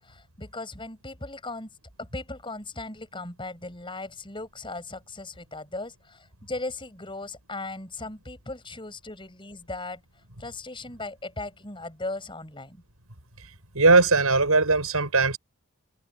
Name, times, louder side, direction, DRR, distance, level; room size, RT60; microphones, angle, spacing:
voice 1, 0.0-1.7 2.0-10.0 10.4-12.8, left 2 dB, 25° left, 7.6 m, -37 dB
voice 2, 13.7-15.4, right 3 dB, 85° right, 6.6 m, -19 dB
head